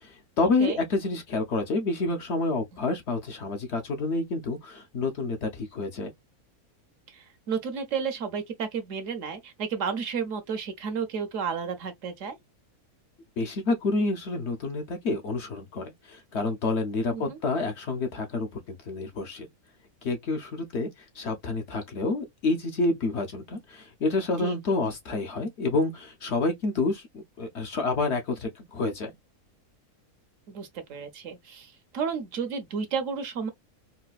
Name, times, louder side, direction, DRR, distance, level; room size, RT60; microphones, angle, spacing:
voice 1, 0.0-6.1 13.4-19.5 20.0-20.9 21.1-29.1, left 3 dB, 60° left, 0.8 m, -28 dB
voice 2, 7.1-12.4 17.1-17.4 24.4-24.6 30.5-33.5, right 6 dB, 65° right, 0.9 m, -32 dB
4.0 x 2.2 x 2.3 m
omnidirectional pair, 1.5 m